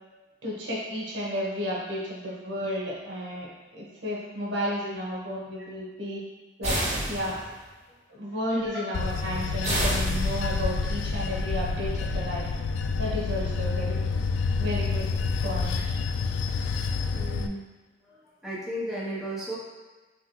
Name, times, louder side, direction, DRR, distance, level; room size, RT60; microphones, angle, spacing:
voice 1, 0.4-6.2 6.6-6.8 7.0-7.4 8.1-12.5 13.0-13.9 14.5-15.1 15.4-15.9, equal, 80° right, -5 dB, 1.2 m, -32 dB
sound 1, 6.6-7.6 9.6-10.7, right 1 dB, 40° right, 1.3 m, -29 dB
Bell / Train, 8.9-17.5, left 4 dB, 90° left, 0.3 m, -28 dB
voice 2, 17.1-17.7 18.0-19.6, right 1 dB, ahead, -8 dB, 0.8 m, -35 dB
5.7 x 2.3 x 3.0 m, 1.3 s
head